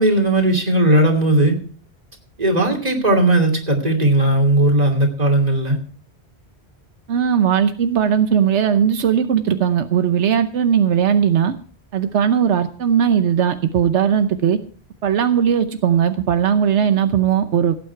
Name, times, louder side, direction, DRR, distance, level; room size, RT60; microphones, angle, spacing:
voice 1, 0.0-1.5 2.4-5.8, right 1 dB, 35° right, 2 dB, 2.9 m, -17 dB
voice 2, 7.1-11.5 11.9-14.6 15.0-17.8, right 8 dB, 85° right, 9 dB, 1.1 m, -18 dB
17.0 x 9.0 x 4.6 m, 0.43 s
omnidirectional pair, 1.2 m